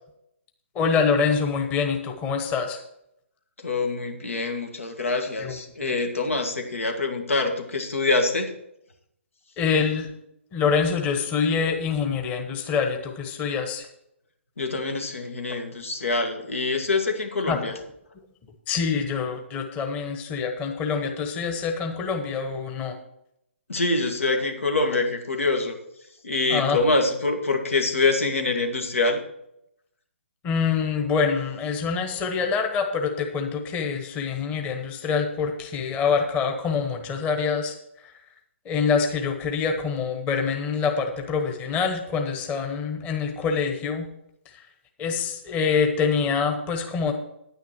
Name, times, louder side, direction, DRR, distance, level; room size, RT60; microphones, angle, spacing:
voice 1, 0.7-2.8 5.4-5.5 9.6-10.1 10.5-13.9 17.5-17.6 18.7-23.0 26.5-26.8 30.4-37.7 38.0-38.1 38.6-44.1 45.0-47.1, left 5 dB, 20° left, 4 dB, 1.2 m, -25 dB
voice 2, 3.6-8.5 14.6-17.8 23.7-25.8 26.2-29.2, left 3 dB, 85° left, 4 dB, 2.0 m, -25 dB
10.0 x 9.4 x 4.6 m, 0.79 s
hypercardioid pair, 145°, 7 cm